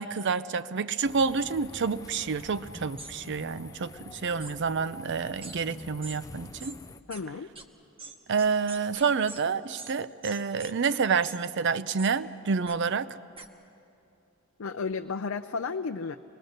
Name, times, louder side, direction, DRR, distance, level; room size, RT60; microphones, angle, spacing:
voice 1, 0.0-6.8 8.3-13.1, right 5 dB, 55° right, 15 dB, 0.5 m, -28 dB
sound 1, 1.0-7.0, left 2 dB, 15° left, 0.4 m, -47 dB
sound 2, 3.0-3.1 4.4-4.5 5.4-5.6 6.0-6.2 6.6-6.8 7.1-7.2 7.6-7.7 8.0-9.4 9.8-9.9 10.2-10.7 11.2-11.4 12.0-12.1 12.7-12.8 13.4-13.5, right 4 dB, 25° right, 1.1 m, -43 dB
voice 2, 7.1-7.5 14.6-16.2, left 4 dB, 70° left, 6 dB, 0.5 m, -33 dB
24.5 x 20.5 x 6.6 m, 2.8 s
head